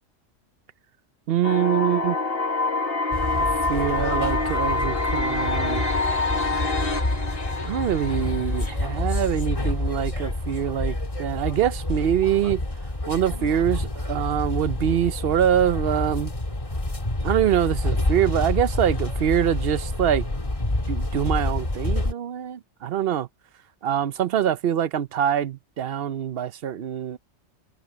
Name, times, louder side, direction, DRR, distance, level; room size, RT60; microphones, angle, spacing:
voice 1, 1.3-2.2 3.4-5.8 7.6-12.6 13.1-16.3 17.2-20.3 20.9-23.3 23.8-27.2, right 10 dB, 55° right, 0.8 m, -24 dB
sound 1, 1.4-9.4, left 3 dB, 50° left, 1.8 m, -26 dB
sound 2, 3.1-22.1, left 1 dB, 25° left, 1.9 m, -28 dB
open air
omnidirectional pair, 1.3 m